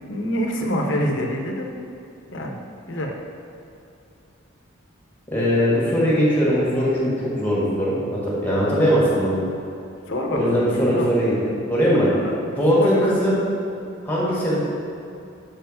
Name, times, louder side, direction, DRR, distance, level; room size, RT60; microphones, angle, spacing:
voice 1, 0.1-1.7 2.3-2.6 2.9-3.1 10.1-11.0 12.1-12.5 12.8-13.0, equal, 60° left, 1 dB, 0.8 m, -26 dB
voice 2, 5.3-9.4 10.3-11.3 11.7-12.1 12.6-13.4 14.0-14.6, equal, 10° left, -7 dB, 1.8 m, -20 dB
5.8 x 4.6 x 6.4 m, 2.6 s
head